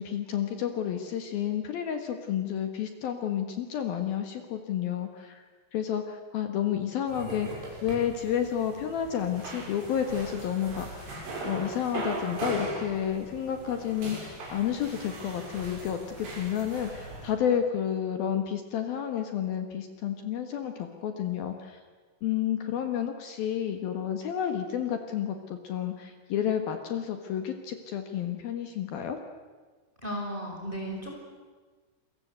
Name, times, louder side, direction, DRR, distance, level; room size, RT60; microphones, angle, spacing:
voice 1, 0.0-5.4 5.7-21.8 22.2-29.2, left 9 dB, 60° left, 6 dB, 2.7 m, -31 dB
sound 1, 7.1-17.3, right 2 dB, 70° right, 9.2 m, -39 dB
voice 2, 30.0-31.1, equal, 10° right, 0 dB, 5.1 m, -34 dB
28.0 x 22.5 x 8.2 m, 1.4 s
omnidirectional pair, 5.8 m